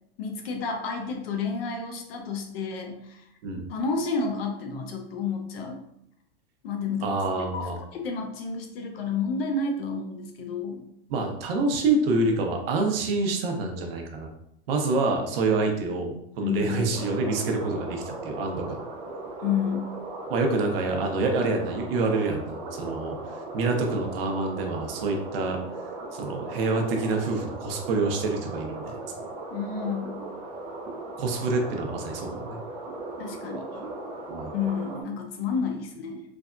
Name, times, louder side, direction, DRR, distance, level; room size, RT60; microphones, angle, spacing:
voice 1, 0.2-3.2 3.7-5.8 6.6-7.2 7.5-10.8 16.4-16.9 19.4-19.9 29.5-30.1 33.2-33.8 34.5-36.2, left 5 dB, 70° left, 3 dB, 0.7 m, -30 dB
voice 2, 7.0-7.8 11.1-14.3 14.7-18.8 20.3-23.2 23.5-25.6 26.1-29.0 31.2-32.6 34.3-34.5, right 3 dB, 65° right, 3 dB, 0.7 m, -27 dB
sound 1, 16.9-35.0, right 2 dB, 20° right, 0.3 m, -38 dB
3.4 x 2.1 x 2.4 m, 0.77 s
supercardioid pair, 140°, 31 cm